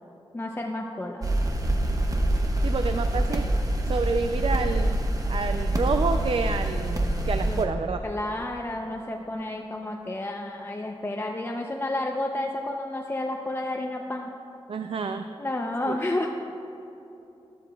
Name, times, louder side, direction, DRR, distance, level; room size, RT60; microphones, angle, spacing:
voice 1, 0.3-1.2 7.5-7.6 8.0-14.3 15.4-16.3, left 1 dB, 25° left, 1 dB, 0.5 m, -31 dB
sound 1, 1.2-7.6, right 1 dB, 35° right, 0.9 m, -25 dB
voice 2, 2.6-3.5 3.9-5.0 5.3-8.0 14.7-15.3 15.9-16.0, right 4 dB, 65° right, 7 dB, 0.4 m, -28 dB
12.5 x 12.0 x 2.3 m, 3.0 s
wide cardioid pair, 95°, 10 cm